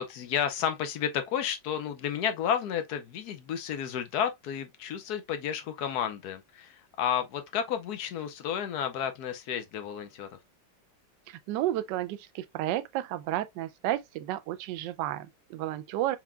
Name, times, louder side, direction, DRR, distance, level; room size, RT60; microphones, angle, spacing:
voice 1, 0.0-10.3, left 8 dB, 70° left, 1.1 m, -31 dB
voice 2, 11.3-16.2, right 14 dB, 80° right, 1.2 m, -32 dB
4.4 x 3.9 x 2.2 m
omnidirectional pair, 1.9 m